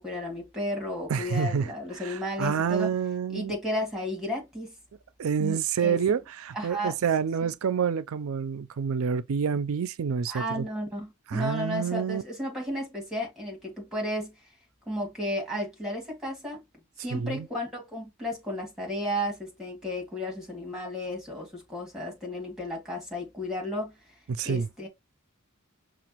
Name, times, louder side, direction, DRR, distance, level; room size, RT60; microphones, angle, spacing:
voice 1, 0.0-2.9 3.3-4.7 5.4-6.0 6.5-6.9 7.4-7.5 10.3-14.3 14.9-16.6 17.0-23.9 24.4-24.9, left 1 dB, ahead, 1.9 m, -33 dB
voice 2, 1.1-1.7 2.0-3.5 5.2-10.6 11.3-12.2 17.1-17.5 24.3-24.7, right 6 dB, 70° right, 0.4 m, -28 dB
5.9 x 2.4 x 2.9 m
head